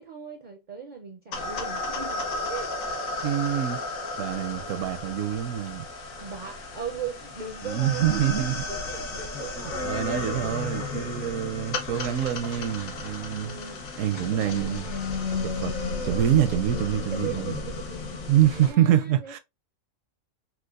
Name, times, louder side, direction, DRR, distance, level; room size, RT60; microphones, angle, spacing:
voice 1, 0.0-2.7 6.1-11.5 13.3-15.1 17.1-18.2 18.5-19.4, right 6 dB, 55° right, 0.5 m, -39 dB
sound 1, 1.3-18.7, left 3 dB, 90° left, 1.2 m, -33 dB
voice 2, 3.2-3.8 4.2-5.9 7.6-8.6 9.8-13.5 14.0-14.9 15.4-17.4 18.3-19.4, right 11 dB, 80° right, 0.9 m, -25 dB
4.6 x 2.3 x 2.3 m
omnidirectional pair, 1.4 m